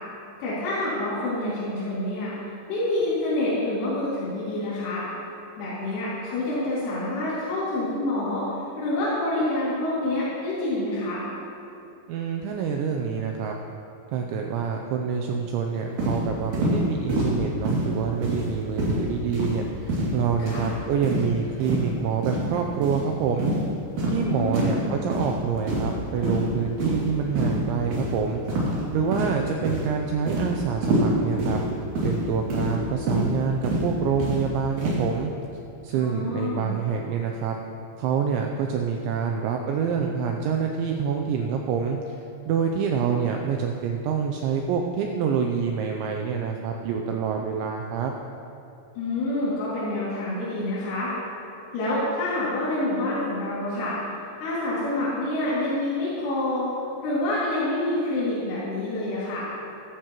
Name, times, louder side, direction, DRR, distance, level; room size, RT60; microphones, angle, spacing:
voice 1, 0.4-2.3 2.7-5.0 5.6-8.5 8.8-11.2 20.4-20.7 24.2-24.9 36.0-36.7 49.0-51.1 51.7-54.0 54.4-56.7 57.0-59.5, left 1 dB, 85° left, -10 dB, 5.2 m, -27 dB
voice 2, 12.1-13.5 14.1-23.5 24.1-31.6 32.0-35.3 35.8-37.6 38.0-42.0 42.5-48.1, right 6 dB, 90° right, 2 dB, 2.6 m, -26 dB
sound 1, 16.0-16.2 16.5-16.8 17.1-17.3 17.7-17.9 18.2-18.5 18.8-19.0 19.3-19.6 19.9-20.1 20.5-20.7 21.0-21.3 21.6-21.8 22.2-22.4 22.8-23.0 23.4-23.6 24.0-24.2 24.5-24.8 25.1-25.3 25.7-26.0 26.2-26.4 26.8-27.1 27.4-27.6 27.9-28.1 28.5-28.8 29.1-29.4 29.7-29.9 30.3-30.5 30.8-31.1 31.4-31.6 32.0-32.2 32.5-32.7 33.1-33.3 33.6-33.8 34.2-34.4 34.8-35.0, right 1 dB, 50° right, 3.3 m, -25 dB
14.5 x 14.0 x 3.0 m, 2.7 s
omnidirectional pair, 6.0 m